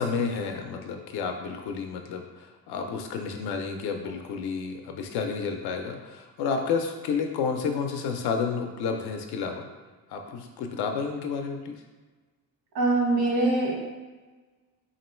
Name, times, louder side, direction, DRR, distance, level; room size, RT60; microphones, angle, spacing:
voice 1, 0.0-9.6 10.1-11.8, left 5 dB, 85° left, 5 dB, 0.5 m, -30 dB
voice 2, 12.7-13.9, right 2 dB, 70° right, -4 dB, 1.3 m, -23 dB
2.9 x 2.6 x 4.3 m, 1.3 s
cardioid pair, 125°, 38 cm